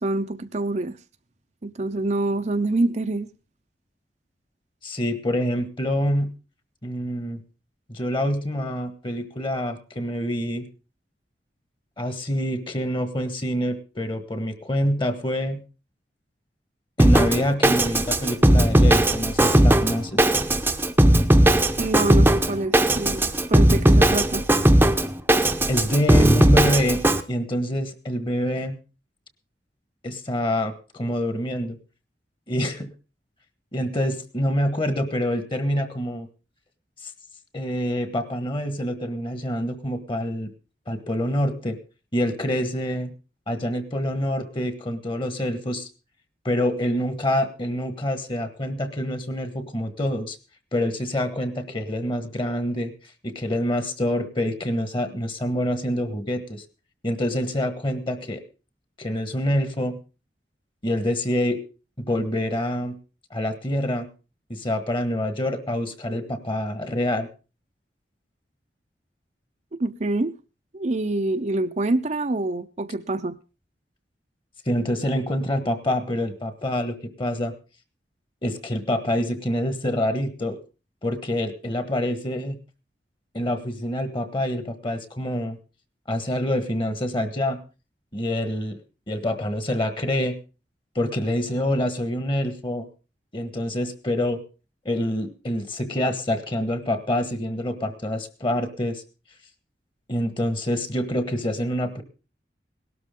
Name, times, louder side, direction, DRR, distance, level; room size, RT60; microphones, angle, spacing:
voice 1, 0.0-1.0 1.6-3.3 21.8-24.4 69.8-70.3 70.7-73.4, right 2 dB, 40° right, 0.7 m, -26 dB
voice 2, 4.8-6.3 6.8-7.4 7.9-10.7 12.0-15.6 17.0-20.3 25.7-27.0 27.3-28.8 30.0-31.8 32.5-32.9 33.7-36.3 37.5-40.5 40.9-41.8 42.1-43.1 43.5-45.9 46.4-50.4 50.7-52.9 53.2-56.6 57.0-58.4 59.0-60.0 60.8-61.6 62.0-63.0 63.3-64.1 64.5-67.3 74.7-77.5 78.4-80.6 81.0-82.5 83.3-85.6 86.1-87.6 88.1-88.8 89.1-90.4 90.9-92.9 93.3-94.4 94.8-99.0 100.1-102.0, left 1 dB, 30° left, 1.4 m, -26 dB
Drum kit, 17.0-27.2, right 1 dB, 10° right, 0.8 m, -18 dB
18.0 x 12.5 x 3.8 m
head